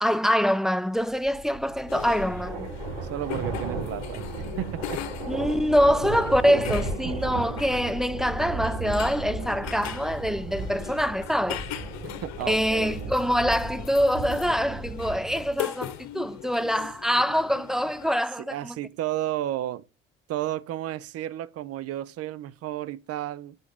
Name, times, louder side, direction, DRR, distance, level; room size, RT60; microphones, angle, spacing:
voice 1, 0.0-2.7 5.3-11.6 12.5-18.8, equal, ahead, 0.4 m, -25 dB
sound 1, 1.1-15.6, right 2 dB, 75° right, 3.6 m, -35 dB
sound 2, 1.9-18.1, left 12 dB, 65° left, 1.1 m, -40 dB
voice 2, 3.1-4.3 4.6-5.1 5.6-6.0 7.0-7.2 12.2-13.0 18.5-19.8 20.3-23.6, right 13 dB, 55° right, 0.6 m, -32 dB
6.4 x 5.0 x 3.5 m
hypercardioid pair, 65°, 30 cm